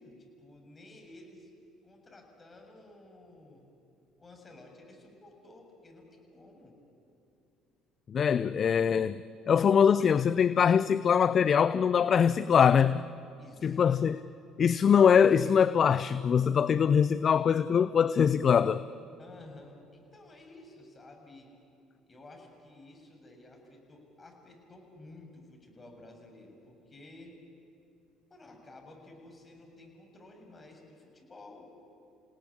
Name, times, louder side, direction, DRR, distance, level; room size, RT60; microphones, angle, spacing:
voice 1, 0.0-1.5 1.8-3.7 4.2-6.8 13.4-14.3 19.2-21.5 22.1-27.4 28.3-31.7, left 2 dB, 30° left, 7.2 m, -53 dB
voice 2, 8.1-13.0 13.6-14.2 14.6-18.8, left 7 dB, 45° left, 0.5 m, -23 dB
29.5 x 17.5 x 9.9 m
hypercardioid pair, 55°, 0 cm